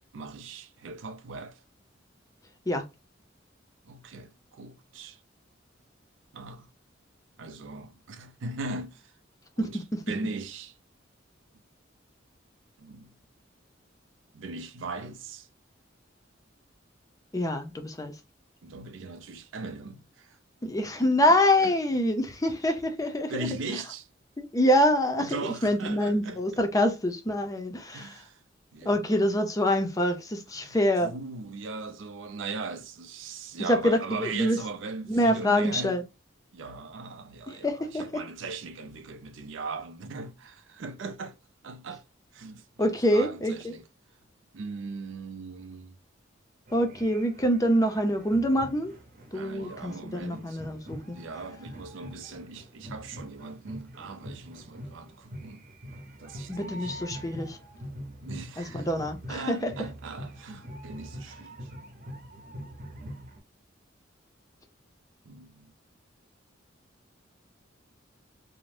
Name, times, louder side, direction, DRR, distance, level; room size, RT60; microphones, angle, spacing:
voice 1, 0.1-1.6 3.9-5.2 6.3-6.7 7.4-9.1 9.6-10.7 12.8-13.1 14.3-15.5 18.6-20.4 20.8-21.1 21.6-21.7 23.3-24.1 25.2-26.4 27.9-28.4 28.7-29.0 30.5-30.8 31.0-36.0 36.5-41.4 41.6-42.0 42.3-43.8 44.5-46.0 49.3-50.6 51.1-55.6 56.2-56.9 58.2-58.9 59.3-61.5 62.3-62.5 65.3-65.7, right 3 dB, 70° right, 0.5 m, -39 dB
voice 2, 9.6-10.0 17.3-18.1 20.6-23.5 24.4-28.2 28.8-31.1 33.7-34.6 35.1-36.0 37.5-38.0 42.8-43.7 46.7-48.9 49.3-51.2 56.5-57.6 58.6-59.7, equal, 20° left, 0.4 m, -26 dB
sound 1, 46.7-63.4, equal, 45° right, 0.8 m, -44 dB
2.6 x 2.0 x 3.2 m
head